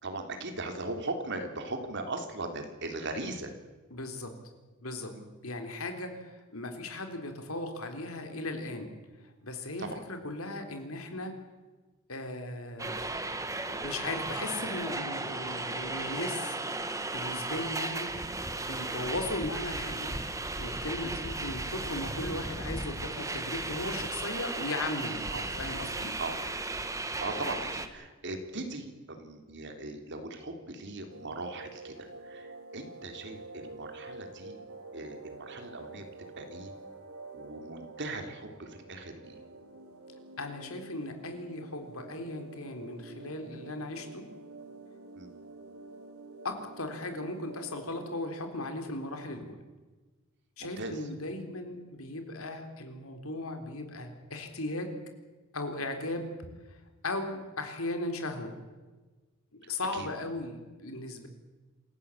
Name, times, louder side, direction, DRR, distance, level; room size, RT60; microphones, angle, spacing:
voice 1, 0.0-3.5 5.1-5.3 9.8-10.0 25.3-25.5 26.2-26.4 27.0-34.6 34.9-36.0 36.4-36.7 37.3-39.4 45.2-45.3 50.6-51.0 59.6-60.1, right 2 dB, 55° right, 5 dB, 3.5 m, -39 dB
voice 2, 3.9-4.4 4.8-5.1 5.4-8.9 9.4-11.3 12.1-13.1 13.7-16.6 16.8-20.3 20.6-25.2 25.5-26.1 40.4-44.2 46.4-49.6 50.6-55.0 55.5-56.3 56.7-56.8 57.0-58.5 59.5-61.3, left 2 dB, 70° left, 6 dB, 3.8 m, -37 dB
sound 1, 12.8-27.9, right 2 dB, 15° right, 1.5 m, -35 dB
sound 2, 31.1-48.2, right 3 dB, 85° right, 3.3 m, -48 dB
27.5 x 16.0 x 8.6 m, 1.3 s
head